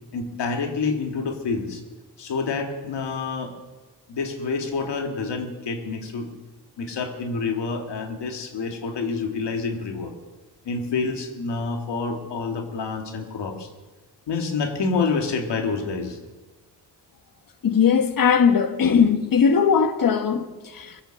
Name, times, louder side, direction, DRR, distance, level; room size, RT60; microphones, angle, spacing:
voice 1, 0.1-1.8 2.2-3.6 4.1-6.3 6.8-10.1 10.6-13.7 14.3-16.2, left 4 dB, 85° left, 2.1 m, -28 dB
voice 2, 17.6-21.0, left 6 dB, 55° left, 1.3 m, -19 dB
21.5 x 8.7 x 6.6 m
cardioid pair, 105°, 41 cm